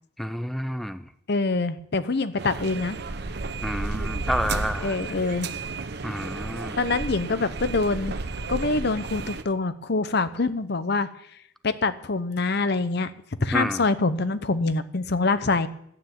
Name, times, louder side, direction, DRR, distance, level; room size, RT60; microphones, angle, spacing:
voice 1, 0.2-1.1 3.6-5.2 6.0-6.8 13.5-13.8, equal, ahead, 11 dB, 0.4 m, -30 dB
voice 2, 1.3-3.0 4.8-5.5 6.8-8.2 8.5-11.1 11.6-13.1 13.4-15.7, left 3 dB, 55° left, 13 dB, 0.7 m, -25 dB
sound 1, 2.4-9.4, right 3 dB, 55° right, 0.8 m, -32 dB
12.0 x 9.3 x 7.4 m, 0.71 s
head